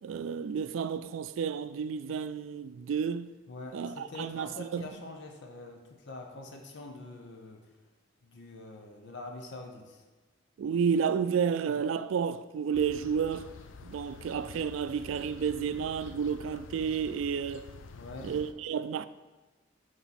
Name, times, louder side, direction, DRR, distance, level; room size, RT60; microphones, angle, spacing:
voice 1, 0.0-3.3 3.7-4.8 10.6-13.5 13.8-17.7 18.2-19.1, right 7 dB, 90° right, 0.3 m, -31 dB
voice 2, 3.5-7.6 8.2-10.0 17.9-18.3, left 2 dB, 65° left, 0.8 m, -45 dB
sound 1, 12.7-18.5, left 4 dB, 85° left, 0.5 m, -48 dB
6.9 x 5.2 x 4.3 m
head